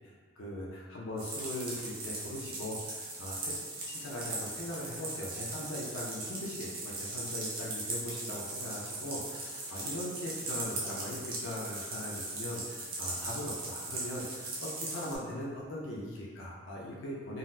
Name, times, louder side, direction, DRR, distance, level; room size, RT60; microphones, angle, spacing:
voice 1, 0.0-3.5 3.9-17.4, left 1 dB, 90° left, -4 dB, 0.5 m, -40 dB
sound 1, 1.2-15.2, right 2 dB, 50° right, 0.7 m, -39 dB
3.9 x 2.0 x 2.6 m, 1.5 s
head